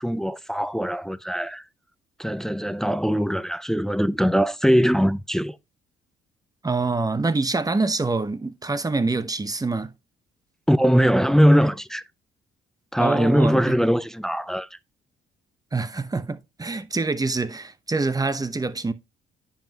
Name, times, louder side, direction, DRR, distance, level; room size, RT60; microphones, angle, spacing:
voice 1, 0.0-1.6 2.2-5.6 10.7-12.0 12.9-14.8, equal, ahead, 0.5 m, -21 dB
voice 2, 6.6-9.9 13.0-13.8 15.7-18.9, right 3 dB, 20° right, 0.9 m, -25 dB
10.0 x 5.7 x 2.9 m
cardioid pair, 90°, 20 cm